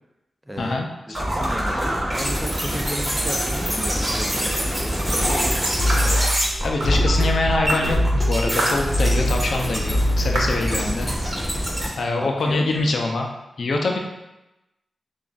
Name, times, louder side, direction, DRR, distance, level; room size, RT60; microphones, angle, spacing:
voice 1, 0.5-5.8 12.2-12.9, equal, 5° right, 3 dB, 0.5 m, -34 dB
sound 1, 1.1-11.9, equal, 20° right, 1.4 m, -25 dB
sound 2, 5.8-10.8, equal, 50° left, 1.0 m, -22 dB
sound 3, 5.9-6.1 6.8-7.0 7.7-7.9 8.6-8.8 9.5-9.6 10.3-10.6, right 1 dB, 85° right, 0.9 m, -26 dB
voice 2, 6.6-8.0 8.3-11.1 12.0-13.3 13.6-14.0, left 2 dB, 70° left, 2 dB, 0.5 m, -24 dB
6.9 x 2.5 x 2.4 m, 0.95 s
cardioid pair, 80°, 0 cm